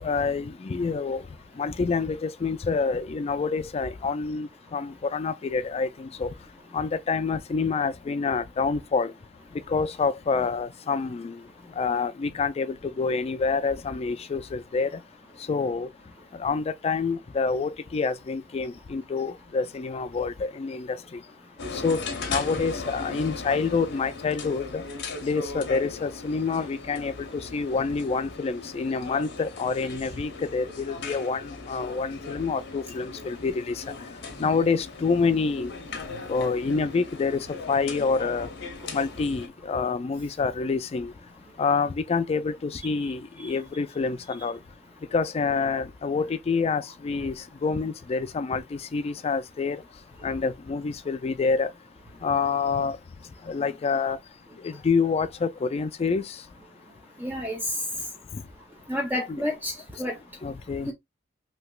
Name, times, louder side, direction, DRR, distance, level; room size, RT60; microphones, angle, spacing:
voice 1, 0.0-1.2 1.6-6.3 6.7-9.1 9.7-11.4 11.8-15.0 15.5-15.9 16.4-21.2 21.7-24.8 25.2-33.8 34.4-35.7 36.3-37.4 37.7-38.5 38.9-41.1 41.6-44.6 45.1-47.4 47.6-49.8 50.2-51.7 52.2-53.0 53.5-54.2 54.6-56.4 59.3-59.5 60.4-60.9, left 4 dB, 35° left, 0.3 m, -27 dB
sound 1, 21.6-39.5, left 4 dB, 60° left, 0.8 m, -38 dB
voice 2, 57.2-57.6 58.9-60.1 60.9-61.0, left 1 dB, 10° right, 0.7 m, -30 dB
3.2 x 2.8 x 2.3 m
head